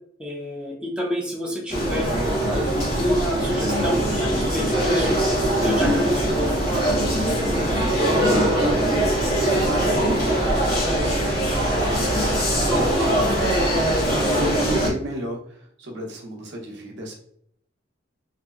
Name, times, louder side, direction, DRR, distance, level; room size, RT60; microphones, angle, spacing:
voice 1, 0.2-2.1 2.5-2.7 3.0-5.2 5.6-6.6, equal, 5° right, -4 dB, 0.5 m, -27 dB
sound 1, 1.7-14.9, right 1 dB, 45° left, 0.9 m, -21 dB
voice 2, 8.2-13.1 13.5-17.1, right 1 dB, 60° right, 0 dB, 0.6 m, -35 dB
2.7 x 2.0 x 2.3 m, 0.66 s
head